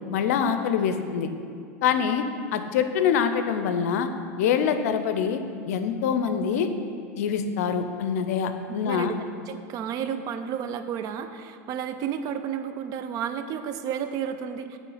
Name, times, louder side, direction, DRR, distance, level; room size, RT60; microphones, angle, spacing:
voice 1, 0.1-1.3 1.8-2.2 2.5-4.1 4.4-6.7 7.2-9.1, left 7 dB, 75° left, 8 dB, 0.5 m, -25 dB
voice 2, 8.8-9.2 9.4-14.8, right 8 dB, 45° right, 9 dB, 0.5 m, -32 dB
8.2 x 3.2 x 5.5 m, 2.3 s
hypercardioid pair, 100°, 8 cm